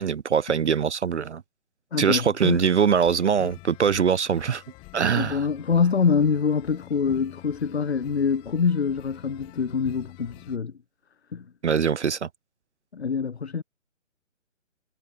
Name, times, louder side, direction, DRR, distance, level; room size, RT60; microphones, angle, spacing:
voice 1, 0.0-1.4 2.0-4.6 4.9-5.5 11.6-12.3, right 7 dB, 65° right, 0.5 m, -22 dB
voice 2, 1.9-2.6 5.1-10.7 11.3-11.5 12.9-13.6, left 6 dB, 55° left, 1.6 m, -25 dB
sound 1, 2.5-10.6, left 25 dB, 10° left, 2.0 m, -47 dB
figure-of-eight pair, 150°, 39 cm